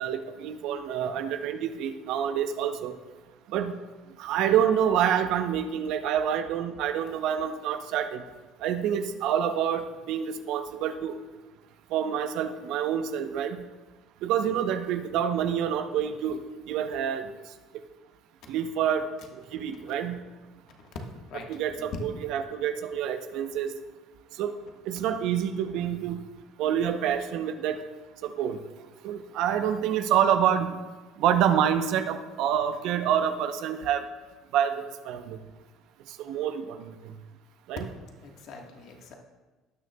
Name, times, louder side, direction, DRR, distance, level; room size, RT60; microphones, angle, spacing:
voice 1, 0.0-2.9 3.5-3.8 4.2-8.2 8.6-11.2 11.9-13.6 14.2-16.4 16.7-17.3 18.5-19.1 19.3-20.2 21.5-23.7 24.4-24.5 24.9-26.2 26.6-27.8 28.2-28.6 29.0-30.8 31.2-34.0 34.5-35.4 36.2-36.9 37.7-37.9, right 9 dB, 70° right, 8 dB, 0.7 m, -27 dB
voice 2, 21.2-22.0 38.2-39.2, left 5 dB, 65° left, 2 dB, 1.4 m, -43 dB
18.0 x 6.4 x 2.3 m, 1.2 s
supercardioid pair, 75°, 0 cm